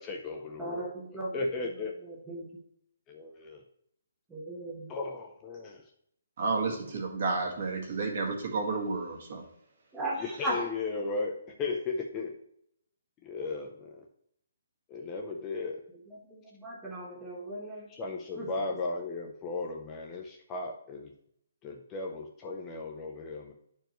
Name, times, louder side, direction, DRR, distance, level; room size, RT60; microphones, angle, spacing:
voice 1, 0.0-0.9 1.3-2.0 3.1-3.6 4.9-5.9 6.6-6.8 10.2-12.4 13.2-14.1 14.9-15.8 17.9-21.1 21.6-23.5, left 3 dB, 15° left, 0.5 m, -36 dB
voice 2, 0.6-1.3 2.0-2.5 4.3-4.9 9.9-10.7 16.3-17.9 18.4-18.5, right 1 dB, 5° right, 0.9 m, -37 dB
voice 3, 6.4-9.4, right 3 dB, 50° right, 1.8 m, -31 dB
10.5 x 4.5 x 3.0 m
hypercardioid pair, 170°, 0 cm